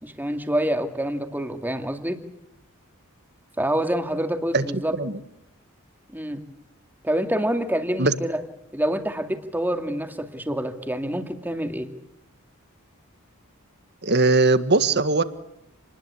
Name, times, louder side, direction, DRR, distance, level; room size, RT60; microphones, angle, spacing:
voice 1, 0.0-2.2 3.6-4.9 6.1-6.4 7.0-8.4 8.7-11.9, right 1 dB, 10° right, 6 dB, 2.3 m, -26 dB
voice 2, 14.0-15.2, right 3 dB, 50° right, 12 dB, 1.6 m, -20 dB
28.5 x 20.5 x 8.5 m, 0.81 s
head